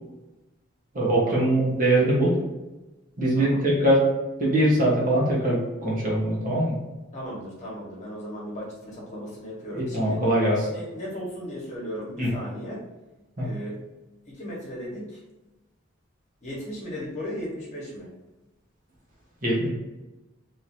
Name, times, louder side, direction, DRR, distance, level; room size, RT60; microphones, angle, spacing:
voice 1, 0.9-2.4 3.2-4.0 4.4-6.7 9.7-10.7 12.2-12.3 13.4-13.5 19.4-19.7, right 1 dB, 40° right, -5 dB, 1.3 m, -22 dB
voice 2, 3.3-3.6 7.1-10.2 10.6-12.8 13.4-13.7 14.4-15.0 16.4-18.1, equal, 35° left, -5 dB, 1.3 m, -36 dB
3.4 x 2.9 x 4.4 m, 1.1 s
head